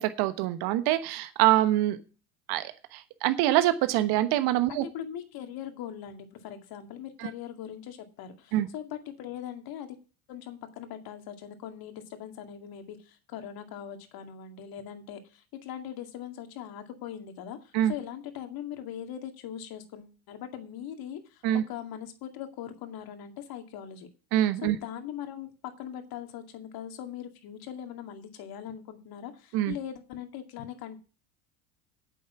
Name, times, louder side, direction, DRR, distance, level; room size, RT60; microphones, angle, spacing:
voice 1, 0.0-2.0 2.5-2.6 2.9-4.8 8.5-8.7 17.7-17.9 21.4-21.6 24.3-24.8 29.5-29.7, right 14 dB, 60° right, 11 dB, 1.2 m, -24 dB
voice 2, 4.7-10.0 10.3-24.1 24.6-31.0, left 9 dB, 55° left, 7 dB, 2.3 m, -41 dB
8.7 x 7.3 x 7.1 m, 0.35 s
hypercardioid pair, 85°, 44 cm